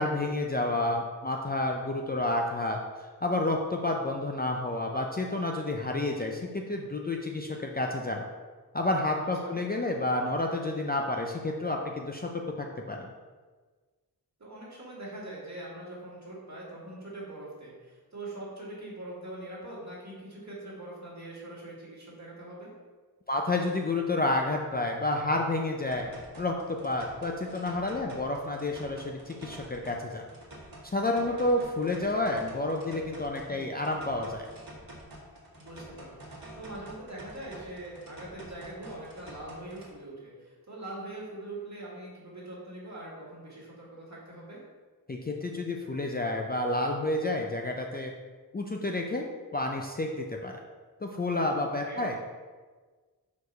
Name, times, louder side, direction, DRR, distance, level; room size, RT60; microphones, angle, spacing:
voice 1, 0.0-2.8 3.2-8.2 8.7-13.1 23.3-30.2 30.8-34.5 45.1-48.1 48.5-49.3 49.5-50.6 51.0-52.2, left 2 dB, 25° left, 1 dB, 0.4 m, -30 dB
voice 2, 9.2-9.5 14.4-22.7 33.5-33.7 35.6-44.6 51.7-52.0, right 1 dB, 45° right, -5 dB, 2.0 m, -43 dB
sound 1, 25.9-39.9, right 1 dB, 60° right, 1.5 m, -48 dB
4.7 x 4.6 x 5.4 m, 1.4 s
wide cardioid pair, 135°, 38 cm